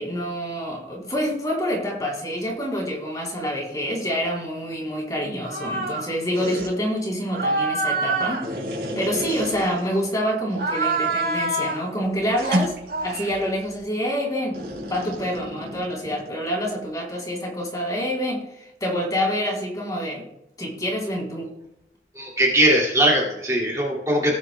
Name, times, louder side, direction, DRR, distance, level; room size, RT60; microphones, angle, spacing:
voice 1, 0.0-8.5 9.0-12.7 13.0-14.6 14.9-20.3 20.6-21.5, equal, 20° left, -2 dB, 3.6 m, -27 dB
sound 1, 5.4-6.1 6.3-6.7 7.3-10.1 10.5-11.9 12.4-13.4 14.5-16.3, right 2 dB, 65° right, 4.6 m, -27 dB
voice 2, 22.2-24.4, right 1 dB, 20° right, -3 dB, 2.5 m, -20 dB
18.0 x 9.7 x 2.3 m, 0.84 s
head